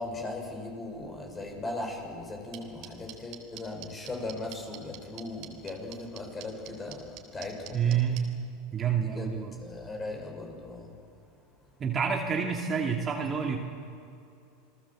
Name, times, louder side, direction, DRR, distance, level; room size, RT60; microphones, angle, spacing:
voice 1, 0.0-7.0 7.3-8.0 8.9-9.3 9.6-10.9, left 2 dB, 20° left, 2 dB, 6.9 m, -38 dB
sound 1, 2.5-8.2, right 18 dB, 55° right, 3.6 m, -43 dB
voice 2, 7.7-8.2 8.7-9.5 11.8-13.6, right 7 dB, 30° right, 1 dB, 2.5 m, -28 dB
28.5 x 19.0 x 7.6 m, 2.5 s
hypercardioid pair, 110°, 0 cm